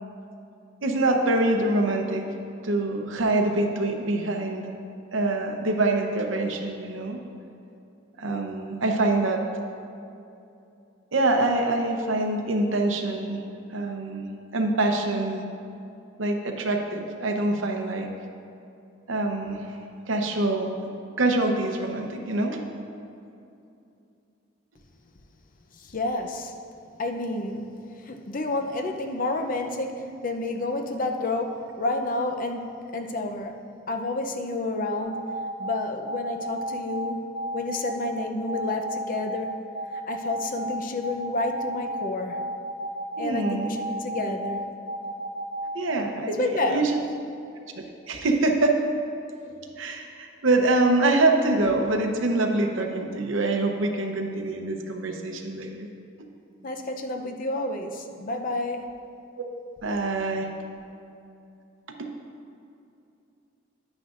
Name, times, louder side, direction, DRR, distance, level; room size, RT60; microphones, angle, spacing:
voice 1, 0.8-2.3 2.6-4.7 5.1-7.2 8.2-9.4 11.1-13.4 13.7-15.4 16.2-18.1 19.1-19.8 20.1-20.9 21.2-22.6 43.2-43.8 45.7-47.0 47.8-48.8 49.8-55.9 59.8-60.5 62.0-62.1, right 2 dB, 75° right, 3 dB, 0.8 m, -25 dB
voice 2, 25.7-26.6 27.0-33.6 33.9-37.3 37.5-39.6 40.1-42.4 43.2-44.7 46.3-46.9 56.6-59.0, left 2 dB, 45° left, 5 dB, 0.6 m, -30 dB
sound 1, 35.0-45.8, right 1 dB, 55° right, 1.7 m, -32 dB
9.8 x 9.7 x 2.5 m, 2.7 s
head